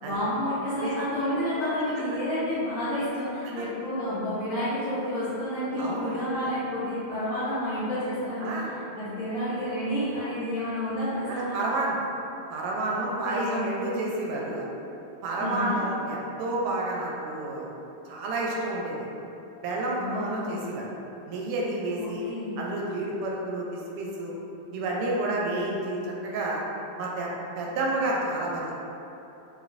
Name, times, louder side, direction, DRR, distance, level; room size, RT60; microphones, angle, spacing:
voice 1, 0.0-8.5 8.9-11.6 12.9-13.7 15.4-15.8 19.9-20.6 22.0-22.6, left 1 dB, 60° left, -14 dB, 0.9 m, -30 dB
voice 2, 5.8-6.5 8.4-8.7 11.3-12.0 12.5-14.6 15.2-17.7 18.1-19.1 19.6-20.9 21.3-22.2 22.6-24.3 24.7-26.6 27.0-28.7, right 2 dB, 90° right, -3 dB, 1.5 m, -30 dB
3.4 x 3.0 x 2.5 m, 2.9 s
omnidirectional pair, 2.4 m